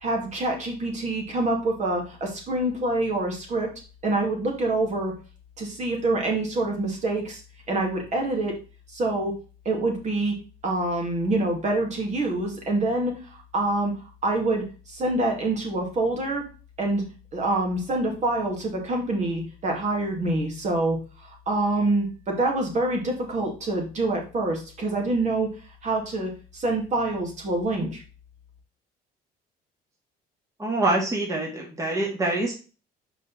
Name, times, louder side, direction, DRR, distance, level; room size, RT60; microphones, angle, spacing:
voice 1, 0.0-3.7 4.0-5.1 5.6-7.4 7.7-8.5 8.9-9.3 9.6-10.3 10.6-13.9 14.2-16.4 16.8-17.0 17.3-25.5 25.8-28.0, right 2 dB, 45° right, 1 dB, 2.4 m, -26 dB
voice 2, 30.6-32.5, right 2 dB, 20° right, -2 dB, 1.9 m, -25 dB
5.3 x 5.2 x 4.1 m, 0.34 s
cardioid pair, 110°, 17 cm